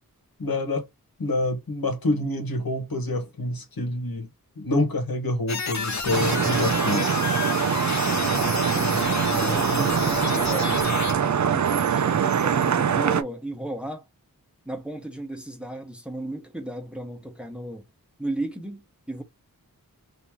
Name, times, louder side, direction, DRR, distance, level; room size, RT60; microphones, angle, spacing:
voice 1, 0.4-0.8 1.2-4.3 4.6-7.2, left 2 dB, 80° left, 1.2 m, -27 dB
sound 1, 5.5-11.1, left 4 dB, 50° left, 0.7 m, -29 dB
Vehicle horn car horn honking / Traffic noise roadway noise, 6.1-13.2, right 7 dB, 55° right, 0.5 m, -23 dB
voice 2, 9.3-10.9 11.4-14.1 14.6-17.9 18.2-19.2, right 1 dB, 5° right, 1.0 m, -35 dB
2.9 x 2.7 x 3.6 m
wide cardioid pair, 70°, 35 cm